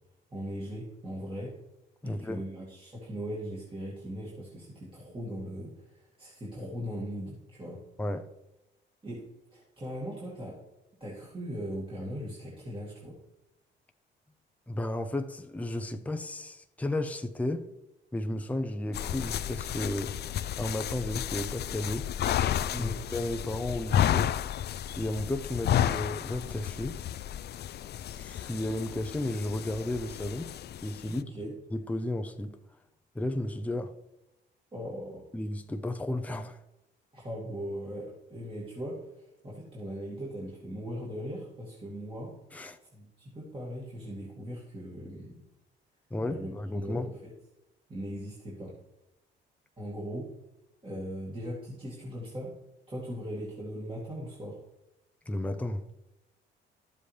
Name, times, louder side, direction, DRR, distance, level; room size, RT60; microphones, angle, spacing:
voice 1, 0.3-1.6 2.0-7.8 9.0-10.6 11.0-13.2 22.7-23.0 31.1-31.6 34.7-35.2 37.1-42.4 42.8-45.4 46.2-47.3 47.9-48.8 49.8-50.3 50.8-52.5 52.9-54.6, equal, 25° right, 2.3 m, -39 dB
voice 2, 2.0-2.4 8.0-8.3 14.7-17.7 18.1-20.1 20.6-22.1 22.8-24.3 25.0-27.0 28.2-30.5 30.8-31.3 31.7-32.6 33.1-33.9 35.3-36.6 42.5-42.8 46.1-47.1 55.3-55.8, left 1 dB, 5° left, 0.6 m, -33 dB
sound 1, 18.9-31.2, left 10 dB, 55° left, 0.4 m, -32 dB
12.0 x 7.5 x 3.3 m
cardioid pair, 90°, 20 cm